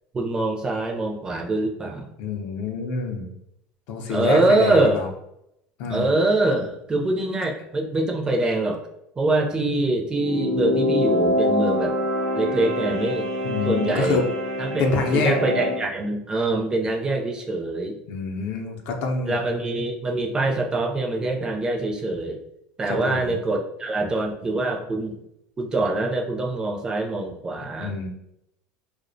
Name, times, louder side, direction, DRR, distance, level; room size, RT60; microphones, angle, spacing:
voice 1, 0.1-2.1 4.1-5.0 5.9-8.8 9.2-11.9 12.3-13.3 13.7-14.2 14.6-14.8 15.1-18.0 19.3-22.4 22.8-25.2 25.6-27.9, right 2 dB, 20° right, 1 dB, 0.4 m, -24 dB
voice 2, 2.2-3.3 3.9-5.1 5.8-6.1 13.4-14.3 14.8-15.4 18.1-19.4 22.9-23.4 27.8-28.1, left 4 dB, 65° left, 3 dB, 0.5 m, -26 dB
sound 1, 10.1-15.9, left 1 dB, 70° right, 0.6 m, -25 dB
2.3 x 2.1 x 2.5 m, 0.80 s
supercardioid pair, 120°, 4 cm